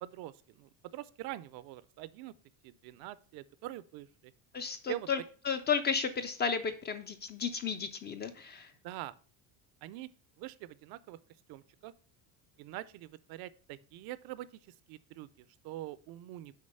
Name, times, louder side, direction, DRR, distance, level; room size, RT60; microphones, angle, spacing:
voice 1, 0.0-2.3 2.6-4.3 4.9-5.1 8.8-9.1 9.8-10.1 10.4-11.2 11.5-11.9 12.6-16.5, right 15 dB, 60° right, 17 dB, 0.5 m, -44 dB
voice 2, 4.5-5.2 5.4-8.7, left 6 dB, 25° left, 9 dB, 0.3 m, -33 dB
6.5 x 5.0 x 5.4 m, 0.41 s
cardioid pair, 160°, 43 cm